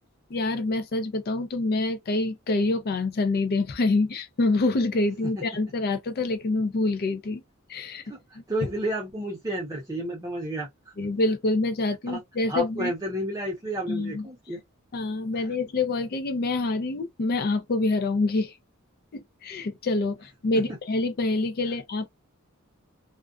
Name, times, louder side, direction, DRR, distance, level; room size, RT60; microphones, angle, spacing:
voice 1, 0.3-7.4 7.7-8.0 8.3-8.4 11.0-12.9 13.9-14.3 14.9-18.5 19.1-22.1, left 2 dB, 45° left, 0.4 m, -26 dB
voice 2, 8.5-10.9 12.1-12.2 12.5-14.6, right 1 dB, 15° right, 0.6 m, -31 dB
2.4 x 2.2 x 2.3 m
head